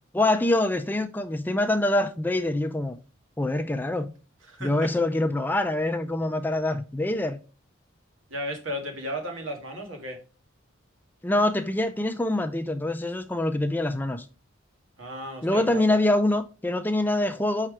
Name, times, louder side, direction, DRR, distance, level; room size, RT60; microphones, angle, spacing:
voice 1, 0.1-3.0 3.4-4.1 4.6-7.4 11.2-14.3 15.4-17.7, left 1 dB, 10° left, 0.4 m, -25 dB
voice 2, 4.5-4.9 8.3-10.2 15.0-16.0, equal, 85° right, 2.0 m, -34 dB
5.6 x 4.6 x 4.9 m
head